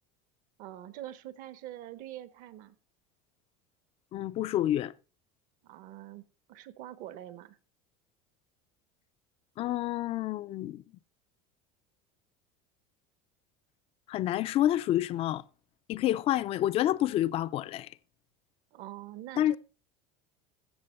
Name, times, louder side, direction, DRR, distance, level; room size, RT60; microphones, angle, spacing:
voice 1, 0.6-2.8 5.6-6.2 6.5-7.6 18.7-19.6, right 13 dB, 50° right, 0.9 m, -44 dB
voice 2, 4.1-4.9 9.6-10.8 14.1-15.4 15.9-17.9 19.4-19.6, left 13 dB, 35° left, 0.5 m, -28 dB
14.5 x 7.7 x 4.3 m
cardioid pair, 160°, 18 cm